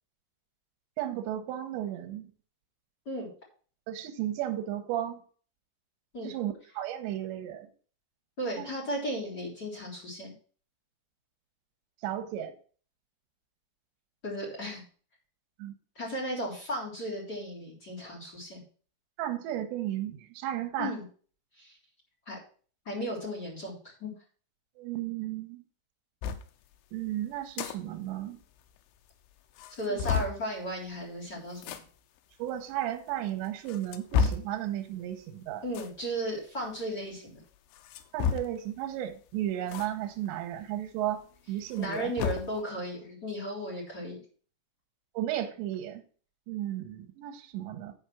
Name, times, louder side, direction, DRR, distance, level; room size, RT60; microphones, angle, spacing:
voice 1, 1.0-2.3 3.9-5.2 6.2-7.7 8.6-8.7 12.0-12.5 15.6-15.7 19.2-20.9 24.8-25.6 26.9-28.4 29.9-30.0 32.4-35.6 38.1-41.2 41.5-42.1 45.1-46.0 46.5-47.9, right 12 dB, 85° right, 3.1 m, -34 dB
voice 2, 8.4-10.3 14.2-14.8 16.0-18.6 20.8-21.0 21.6-21.8 22.3-22.4 22.9-24.1 29.8-31.8 35.6-37.4 41.8-44.2, equal, 25° left, 3.7 m, -35 dB
sound 1, 26.2-26.5 27.4-27.8 28.1-28.2 28.4-28.5 29.1-29.2 29.6-30.4 31.6-31.8 32.7-32.8 33.4-34.6 35.7-36.0 37.7-38.7 39.7-39.9 40.3-40.4 41.6-42.6, left 6 dB, 90° left, 3.2 m, -31 dB
10.5 x 4.8 x 6.0 m
omnidirectional pair, 5.1 m